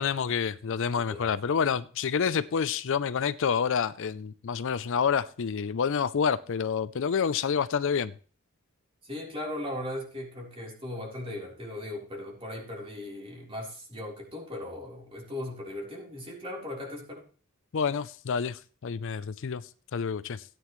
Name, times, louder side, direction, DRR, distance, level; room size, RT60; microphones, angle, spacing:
voice 1, 0.0-8.1 17.7-20.4, left 6 dB, 60° left, 0.5 m, -28 dB
voice 2, 0.9-1.3 9.0-17.2, left 1 dB, 25° right, 3.7 m, -38 dB
16.5 x 9.3 x 3.1 m
head